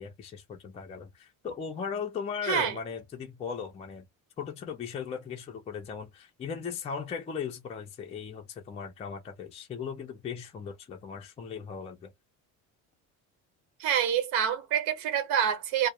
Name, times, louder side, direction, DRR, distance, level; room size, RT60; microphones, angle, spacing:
voice 1, 0.0-4.1 4.4-12.1, left 6 dB, 20° left, 0.3 m, -37 dB
voice 2, 2.4-2.7 13.8-15.9, right 9 dB, 85° right, 1.0 m, -27 dB
2.3 x 2.0 x 2.8 m
cardioid pair, 170°, 34 cm